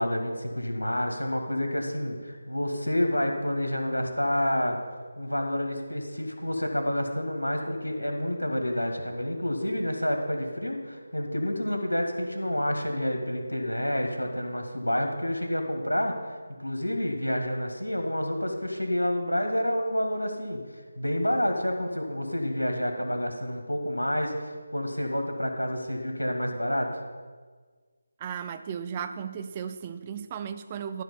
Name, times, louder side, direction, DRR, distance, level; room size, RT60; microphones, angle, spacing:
voice 1, 0.0-4.8 5.2-16.3 16.6-20.6 21.0-27.0, left 1 dB, 85° left, 3 dB, 1.9 m, -29 dB
voice 2, 28.2-31.0, right 7 dB, 20° right, 9 dB, 0.4 m, -35 dB
12.5 x 4.6 x 7.0 m, 1.5 s
figure-of-eight pair, 160°, 0 cm